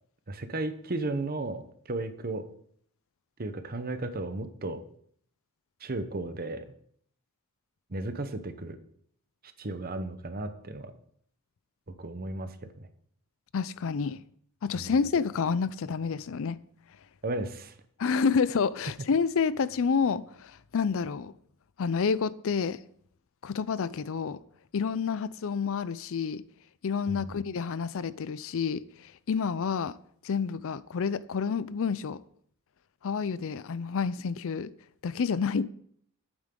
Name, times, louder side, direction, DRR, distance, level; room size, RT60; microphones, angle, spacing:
voice 1, 0.3-2.5 3.4-4.8 5.8-6.7 7.9-8.8 9.6-10.9 12.0-12.9 14.7-15.0 17.2-17.7 27.1-27.3, right 2 dB, 40° right, 0.9 m, -34 dB
voice 2, 13.5-14.2 14.6-16.6 18.0-21.3 21.8-22.8 23.4-24.4 24.7-26.4 26.8-29.9 30.2-32.2 33.0-34.7 35.0-35.7, left 5 dB, 65° left, 0.4 m, -29 dB
11.5 x 8.9 x 3.8 m
head